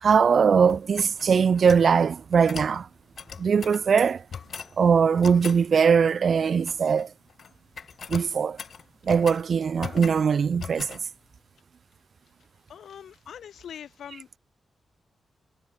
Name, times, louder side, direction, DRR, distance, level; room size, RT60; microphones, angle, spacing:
voice 1, 0.0-2.9 3.4-4.2 4.8-7.1 8.1-8.6 9.0-11.0, right 6 dB, 65° right, 0.6 m, -21 dB
sound 1, 0.7-1.9 2.5-2.8 3.2-3.8 4.3-4.7 5.2-5.6 6.4-7.0 7.3-7.5 7.8-9.4 9.8-10.3 10.6-11.0, left 6 dB, 65° left, 1.2 m, -39 dB
voice 2, 12.7-14.3, left 9 dB, 85° left, 1.8 m, -43 dB
cardioid pair, 70°, 0 cm